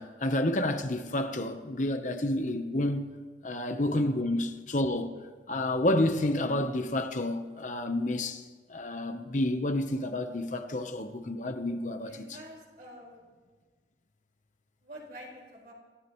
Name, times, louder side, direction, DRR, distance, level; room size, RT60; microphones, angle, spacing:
voice 1, 0.0-3.2 3.4-5.1 5.5-8.4 8.7-12.4, left 1 dB, 45° left, 0.9 m, -30 dB
voice 2, 12.0-13.2 14.8-15.7, equal, 55° right, 4.8 m, -47 dB
27.5 x 15.5 x 3.1 m
head